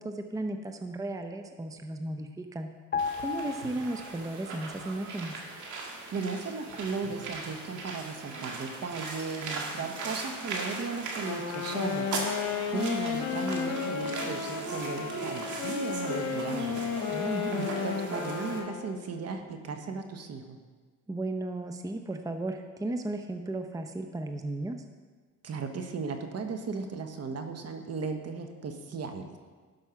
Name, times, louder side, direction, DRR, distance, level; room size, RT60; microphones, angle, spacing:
voice 1, 0.0-2.7 3.2-5.4 17.1-17.7 21.1-24.8, right 2 dB, 10° right, 6 dB, 0.7 m, -35 dB
sound 1, 2.9-4.6 4.8-5.0, left 5 dB, 35° left, 0.8 m, -35 dB
sound 2, 3.0-18.6, right 3 dB, 70° right, 1.9 m, -39 dB
voice 2, 6.1-12.4 12.7-16.8 17.5-20.6 25.4-29.4, right 4 dB, 55° right, 6 dB, 1.2 m, -36 dB
Wind instrument woodwind instrument, 11.2-19.1, left 6 dB, 75° left, 1.4 m, -33 dB
12.0 x 5.5 x 5.7 m, 1.5 s
cardioid pair, 90°, 30 cm